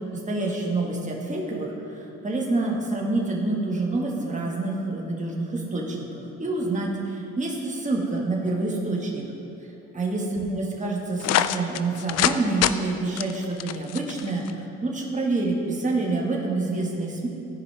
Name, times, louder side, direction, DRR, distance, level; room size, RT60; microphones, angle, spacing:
voice 1, 0.1-9.3 9.9-17.3, right 2 dB, 25° right, -2 dB, 1.8 m, -27 dB
sound 1, 11.2-12.4 12.6-12.7 13.2-14.5, left 12 dB, 55° left, 0.4 m, -24 dB
14.0 x 5.2 x 3.5 m, 2.9 s
supercardioid pair, 70°, 31 cm